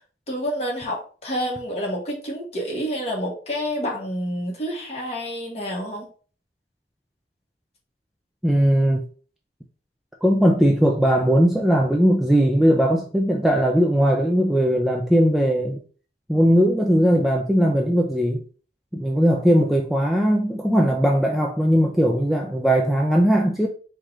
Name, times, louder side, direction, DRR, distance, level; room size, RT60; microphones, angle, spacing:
voice 1, 0.3-6.1, equal, 35° left, 1.5 m, -28 dB
voice 2, 8.4-9.0 10.2-15.8 16.3-18.4 18.9-23.7, equal, ahead, 0.4 m, -19 dB
4.4 x 2.4 x 4.7 m
head